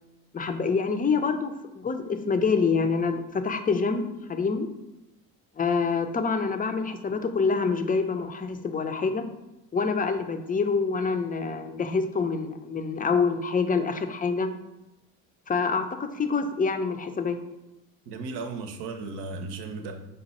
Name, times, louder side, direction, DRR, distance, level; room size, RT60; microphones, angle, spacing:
voice 1, 0.3-4.7 5.6-9.2 9.7-14.5 15.5-17.4, left 4 dB, 20° left, 7 dB, 0.5 m, -26 dB
voice 2, 18.1-20.1, right 3 dB, 75° right, 6 dB, 0.7 m, -35 dB
5.2 x 2.3 x 4.1 m, 0.97 s
supercardioid pair, 60°, 40 cm